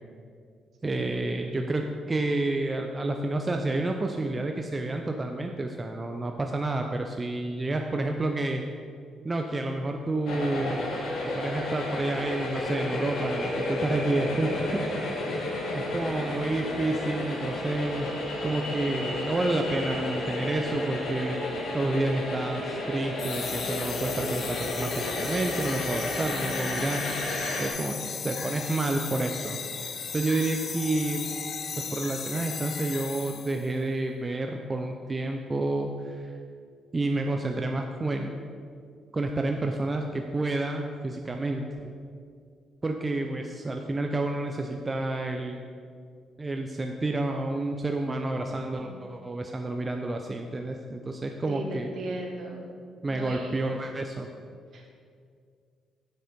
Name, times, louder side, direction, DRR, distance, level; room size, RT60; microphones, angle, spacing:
voice 1, 0.8-8.6 9.2-10.8 11.2-14.9 15.7-18.1 18.4-21.4 21.7-27.1 27.6-28.0 28.2-29.6 30.1-31.2 31.8-36.3 36.9-38.4 39.1-41.9 42.8-45.6 46.4-51.9 53.0-54.3, right 2 dB, 25° right, 3 dB, 0.5 m, -29 dB
sound 1, 10.3-27.7, left 1 dB, 70° left, 1.7 m, -32 dB
sound 2, 23.2-33.7, left 6 dB, 50° left, 0.7 m, -36 dB
voice 2, 51.4-52.7 53.1-53.7 54.7-55.0, right 2 dB, 60° right, 0 dB, 1.8 m, -37 dB
8.0 x 6.6 x 5.1 m, 2.3 s
cardioid pair, 90°, 0 cm